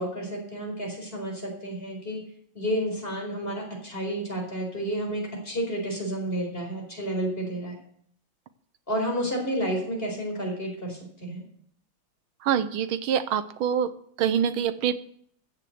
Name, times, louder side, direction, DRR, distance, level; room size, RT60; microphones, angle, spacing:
voice 1, 0.0-2.2 2.5-7.7 8.9-11.4, right 1 dB, 25° left, 1 dB, 4.7 m, -31 dB
voice 2, 12.4-13.9 14.2-14.9, right 8 dB, 85° right, 13 dB, 1.7 m, -25 dB
14.5 x 7.1 x 7.9 m, 0.65 s
omnidirectional pair, 2.2 m